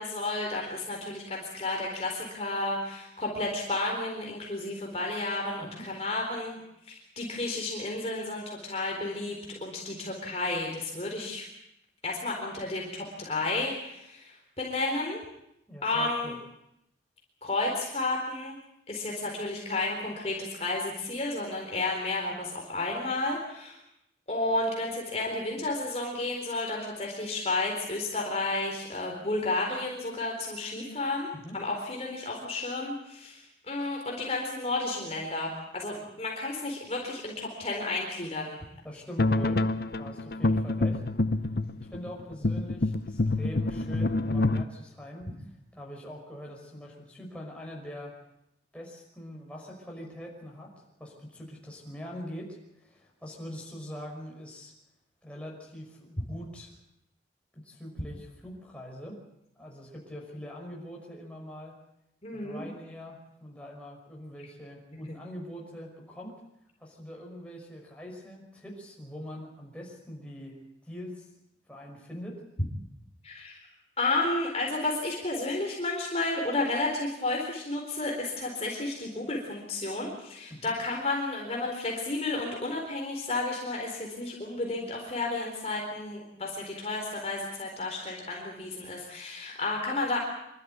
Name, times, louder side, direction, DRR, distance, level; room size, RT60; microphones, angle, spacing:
voice 1, 0.0-11.5 12.0-15.2 15.8-16.3 17.4-18.6 18.9-23.8 24.3-38.6 62.2-62.6 65.1-65.2 73.2-73.6 74.0-90.2, left 2 dB, 35° left, -1 dB, 4.1 m, -32 dB
voice 2, 15.7-16.4 31.3-31.6 38.8-39.7 40.0-41.0 41.9-45.3 45.7-48.1 48.7-54.7 55.2-56.7 57.5-59.2 59.6-61.8 62.3-66.4 66.8-70.6 70.8-71.3 71.7-72.4 80.5-80.7, equal, 5° left, -1 dB, 5.6 m, -43 dB
sound 1, 39.2-44.6, left 2 dB, 55° left, 0.7 m, -27 dB
26.0 x 13.0 x 9.6 m, 0.82 s
head